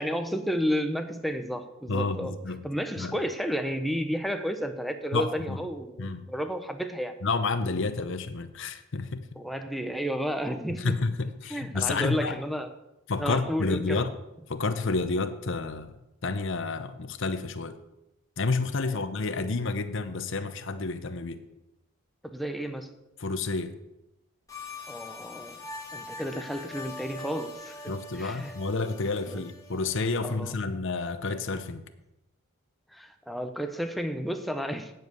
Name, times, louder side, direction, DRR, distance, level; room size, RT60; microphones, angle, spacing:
voice 1, 0.0-2.4 2.6-7.2 9.4-11.0 11.5-12.7 13.2-14.1 22.3-23.0 24.9-25.6 25.9-28.5 29.3-29.4 30.2-30.6 32.9-34.9, equal, ahead, 7 dB, 0.8 m, -32 dB
voice 2, 1.9-2.6 3.0-3.2 5.1-5.6 6.0-6.3 7.2-9.2 10.8-12.3 13.1-14.1 14.5-15.9 16.2-17.8 18.4-21.4 23.2-23.7 27.9-31.8, left 3 dB, 60° left, 10 dB, 0.8 m, -30 dB
sound 1, 24.5-30.4, left 2 dB, 15° left, 1.7 m, -43 dB
9.2 x 7.9 x 8.0 m, 0.92 s
head